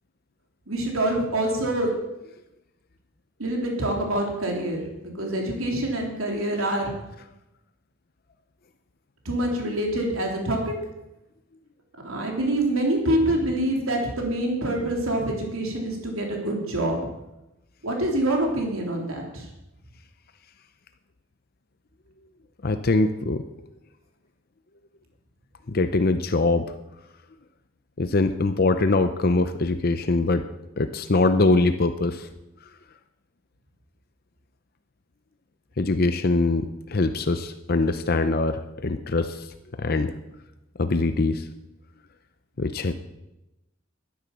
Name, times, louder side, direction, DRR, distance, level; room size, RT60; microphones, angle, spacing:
voice 1, 0.7-1.9 3.4-6.9 9.2-10.7 12.0-17.0 17.8-19.5, right 1 dB, 85° right, 1 dB, 3.3 m, -26 dB
voice 2, 22.6-23.4 25.7-26.7 28.0-30.4 30.8-32.3 35.8-39.5 39.8-40.1 40.8-41.5 42.6-42.9, left 2 dB, 45° left, 9 dB, 0.7 m, -23 dB
12.5 x 10.0 x 7.2 m, 0.94 s
head